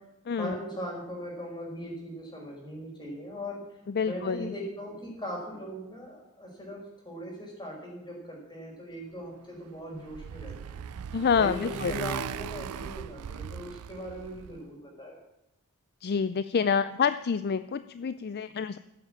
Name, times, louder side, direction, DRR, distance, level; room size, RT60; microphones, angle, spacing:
voice 1, 0.3-3.8 4.0-10.8 11.4-15.2, equal, 20° left, 0 dB, 4.9 m, -39 dB
voice 2, 3.9-4.6 11.1-11.9 16.0-18.8, left 6 dB, 45° left, 13 dB, 0.4 m, -27 dB
Motorcycle, 9.6-14.6, right 7 dB, 80° right, 0.4 m, -38 dB
15.0 x 7.7 x 8.6 m, 0.88 s
head